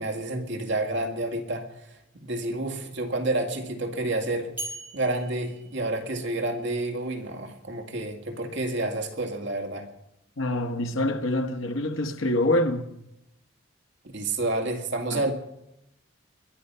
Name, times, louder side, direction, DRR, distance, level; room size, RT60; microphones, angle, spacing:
voice 1, 0.0-4.5 4.9-9.9 14.1-15.3, right 2 dB, 65° right, 2.0 m, -29 dB
sound 1, 4.6-6.6, right 2 dB, 10° right, 3.4 m, -41 dB
voice 2, 10.4-12.9 15.1-15.2, left 1 dB, 85° left, 1.3 m, -26 dB
22.0 x 11.0 x 5.6 m
head